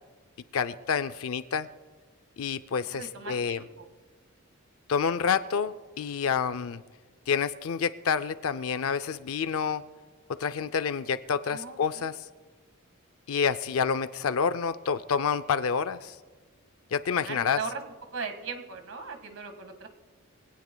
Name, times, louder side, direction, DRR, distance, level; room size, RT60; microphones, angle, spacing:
voice 1, 0.5-1.7 2.4-3.6 4.9-6.8 7.3-9.8 10.4-12.3 13.3-16.2 16.9-17.6, left 6 dB, 80° left, 12 dB, 0.5 m, -28 dB
voice 2, 2.8-3.9 11.5-12.1 17.2-17.8 18.1-19.9, right 5 dB, 70° right, 6 dB, 1.8 m, -39 dB
24.0 x 17.5 x 2.3 m, 1.4 s
head